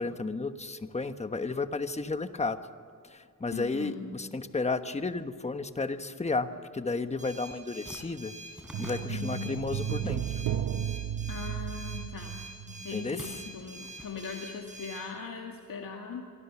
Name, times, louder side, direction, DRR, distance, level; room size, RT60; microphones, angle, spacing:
voice 1, 0.0-2.6 3.0-8.3 8.8-10.2 12.9-13.4, left 3 dB, 20° left, 9 dB, 1.1 m, -33 dB
voice 2, 3.5-4.1 9.1-9.6 11.3-16.2, left 5 dB, 75° left, 1 dB, 2.2 m, -40 dB
sound 1, 7.2-15.0, right 2 dB, 20° right, 7.2 m, -46 dB
sound 2, 7.7-10.7 10.9-12.1 12.8-14.8, equal, 5° right, 3.7 m, -48 dB
sound 3, 8.7-13.2 13.4-13.6, right 10 dB, 75° right, 0.8 m, -34 dB
28.0 x 23.5 x 7.1 m, 2.4 s
wide cardioid pair, 130°, 34 cm